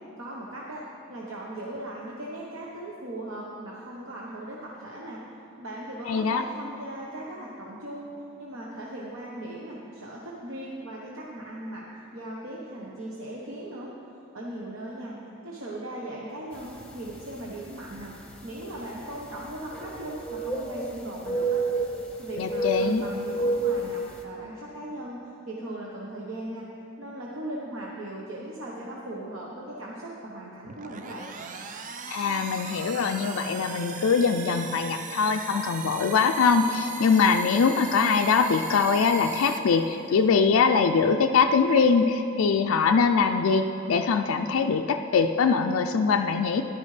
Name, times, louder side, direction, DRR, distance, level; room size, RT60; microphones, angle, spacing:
voice 1, 0.2-0.8 1.1-5.2 5.6-8.1 8.4-11.9 12.1-13.9 14.3-15.1 15.4-18.1 18.4-21.6 22.2-25.2 25.5-26.6 27.0-31.3, right 1 dB, 75° right, -4 dB, 1.1 m, -38 dB
voice 2, 6.1-6.4 22.4-23.0 32.1-46.6, left 5 dB, 90° left, 5 dB, 0.4 m, -23 dB
sound 1, 16.8-17.0 17.7-17.8 19.7-20.9 21.2-22.1 22.5-23.9, right 2 dB, 5° left, 0.8 m, -28 dB
sound 2, 30.6-40.4, right 6 dB, 40° right, 0.5 m, -40 dB
14.0 x 11.0 x 3.3 m, 2.7 s
head